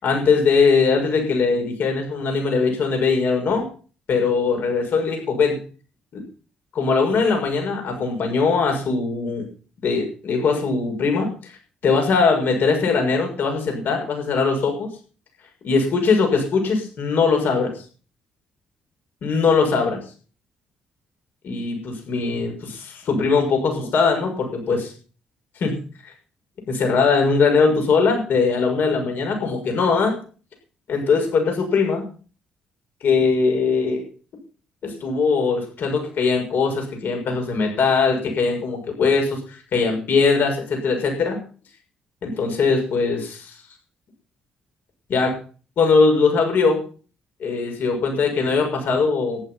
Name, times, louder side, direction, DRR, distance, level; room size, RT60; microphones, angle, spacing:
voice 1, 0.0-3.7 4.1-5.6 6.1-6.2 6.7-9.4 9.8-11.3 11.8-14.9 15.6-17.7 19.2-20.0 21.4-24.9 25.6-25.8 26.7-30.2 30.9-32.0 33.0-34.0 34.8-41.4 42.2-43.5 45.1-45.3 45.8-46.8 47.4-49.4, left 4 dB, 60° left, 3 dB, 6.6 m, -20 dB
14.5 x 11.0 x 5.9 m, 0.39 s
hypercardioid pair, 45°, 4 cm